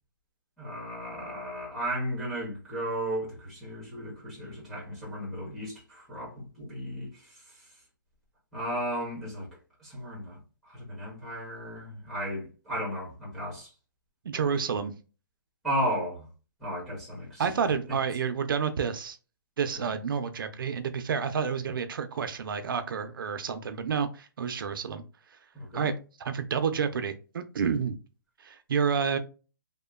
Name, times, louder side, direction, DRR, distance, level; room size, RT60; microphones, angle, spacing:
voice 1, 0.6-7.4 8.5-9.5 9.8-10.4 10.7-13.7 15.6-16.3 16.6-17.4 19.7-19.9 25.5-25.9, equal, ahead, 0.6 m, -34 dB
voice 2, 14.2-14.9 17.4-19.2 19.6-25.0 25.7-25.9 26.2-28.0 28.4-29.2, right 6 dB, 75° right, 0.4 m, -29 dB
2.9 x 2.1 x 2.2 m
hypercardioid pair, 180°, 11 cm